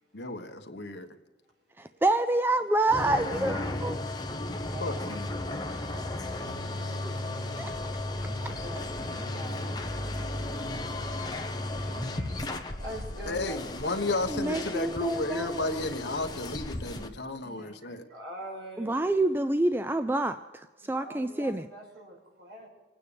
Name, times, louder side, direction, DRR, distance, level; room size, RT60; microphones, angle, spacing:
voice 1, 0.1-1.1 4.8-5.3 13.3-18.0, left 2 dB, 65° left, 6 dB, 1.2 m, -33 dB
voice 2, 1.8-4.1 5.1-5.2 7.0-7.1 7.6-7.9 8.4-8.5 14.3-15.9 18.8-21.7, right 2 dB, 10° right, 10 dB, 0.4 m, -28 dB
sound 1, 2.9-17.1, left 2 dB, 20° left, 1.0 m, -35 dB
voice 3, 5.6-6.5 8.5-11.4 11.7-14.2 17.4-19.0 20.8-22.7, right 1 dB, 65° right, -1 dB, 5.3 m, -45 dB
sound 2, 6.4-12.3, equal, 85° right, 2.7 m, -43 dB
26.5 x 9.3 x 5.2 m, 1.3 s
head